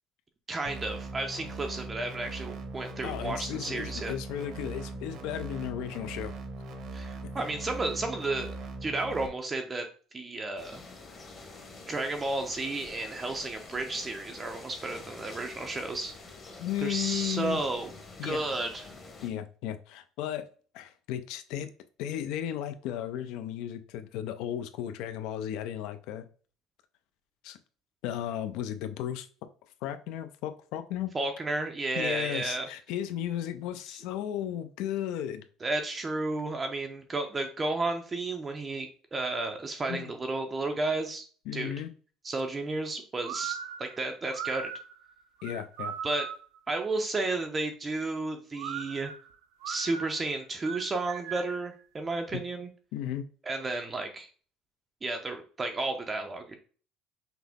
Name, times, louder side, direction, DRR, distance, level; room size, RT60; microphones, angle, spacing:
voice 1, 0.5-4.1 6.9-9.9 10.1-10.8 11.9-16.1 16.8-17.9 18.2-18.9 31.1-32.7 33.9-34.0 35.6-41.2 41.5-41.7 42.2-44.7 46.0-46.3 46.7-49.1 49.7-52.7 53.4-54.3 55.0-56.6, right 2 dB, 20° right, 0.5 m, -32 dB
sound 1, 0.7-9.3, right 2 dB, 50° right, 0.8 m, -40 dB
voice 2, 3.0-6.3 7.2-7.3 16.6-17.6 18.2-18.4 19.2-20.4 20.7-21.7 22.0-26.3 27.4-27.6 28.0-29.3 29.8-31.1 32.0-35.4 39.9-40.1 41.5-41.9 45.4-45.9 52.3-52.4 52.9-53.3, left 11 dB, 70° left, 0.5 m, -35 dB
sound 2, 10.6-19.3, left 3 dB, 25° left, 0.9 m, -47 dB
sound 3, 43.2-46.6 48.6-51.7, right 8 dB, 70° right, 0.4 m, -39 dB
5.9 x 2.1 x 3.4 m
cardioid pair, 145°, 0 cm